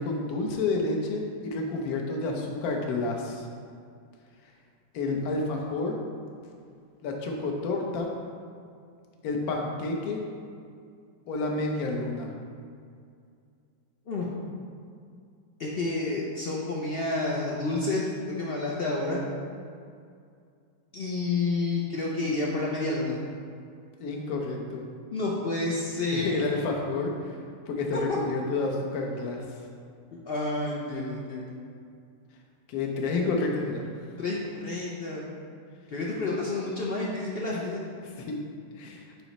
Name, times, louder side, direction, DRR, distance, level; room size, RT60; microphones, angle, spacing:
voice 1, 0.0-3.5 4.9-6.0 7.0-8.1 9.2-10.2 11.3-12.3 24.0-24.8 26.1-27.1 27.7-29.4 32.7-33.9 38.0-38.4 38.8-39.0, left 3 dB, 60° left, 1 dB, 1.2 m, -29 dB
voice 2, 15.6-19.2 20.9-23.2 25.1-26.4 27.9-28.0 30.1-31.5 34.2-35.3 35.9-37.8, left 2 dB, 75° left, -4 dB, 0.5 m, -29 dB
9.0 x 3.0 x 4.1 m, 2.3 s
omnidirectional pair, 1.9 m